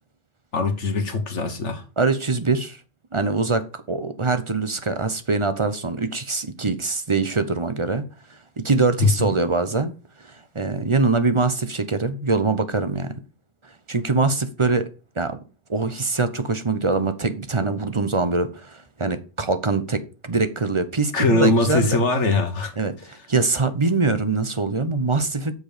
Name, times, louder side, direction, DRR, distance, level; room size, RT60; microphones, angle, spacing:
voice 1, 0.5-1.8 9.0-9.3 21.1-22.7, left 3 dB, 70° left, 1.6 m, -21 dB
voice 2, 2.0-2.8 3.1-8.0 8.6-9.9 10.3-13.1 13.9-14.9 15.2-15.4 15.7-22.0 22.8-22.9 23.3-25.5, right 3 dB, 30° right, 0.8 m, -23 dB
7.9 x 6.7 x 5.0 m
omnidirectional pair, 1.3 m